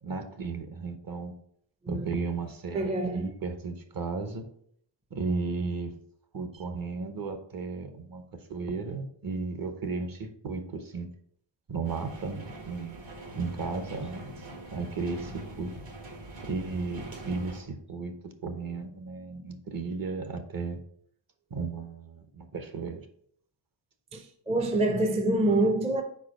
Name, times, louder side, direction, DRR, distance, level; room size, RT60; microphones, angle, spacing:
voice 1, 0.0-1.4 1.9-4.5 5.1-5.9 6.3-11.1 11.7-13.0 13.4-14.3 14.7-15.7 16.4-20.8 21.5-23.1, right 4 dB, 45° right, 0.9 m, -34 dB
voice 2, 2.7-3.3 24.1-26.0, right 2 dB, 15° right, 0.4 m, -26 dB
sound 1, 11.8-17.6, right 1 dB, 65° right, 1.8 m, -43 dB
4.7 x 4.6 x 6.0 m
wide cardioid pair, 155°, 47 cm